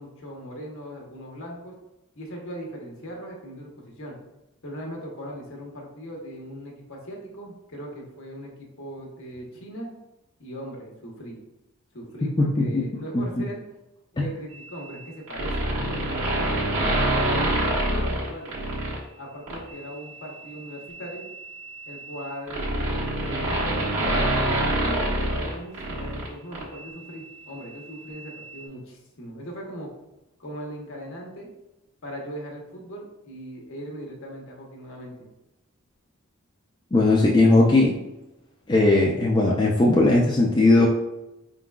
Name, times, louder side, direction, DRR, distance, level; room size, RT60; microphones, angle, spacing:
voice 1, 0.0-1.7 2.1-4.2 4.6-9.9 10.4-11.4 11.9-13.6 14.1-17.5 17.9-18.6 19.2-21.2 21.9-24.4 24.8-29.9 30.4-31.5 32.0-35.3 37.1-37.2, equal, 60° left, -1 dB, 1.0 m, -39 dB
voice 2, 12.4-12.8 13.1-13.2 14.2-14.3 36.9-37.9 38.7-40.9, left 2 dB, 20° left, -2 dB, 0.3 m, -18 dB
sound 1, 15.3-19.0 19.5-19.7 20.9-26.3 26.5-26.6, right 1 dB, 90° right, 1.4 m, -25 dB
4.6 x 3.8 x 2.3 m, 0.95 s
head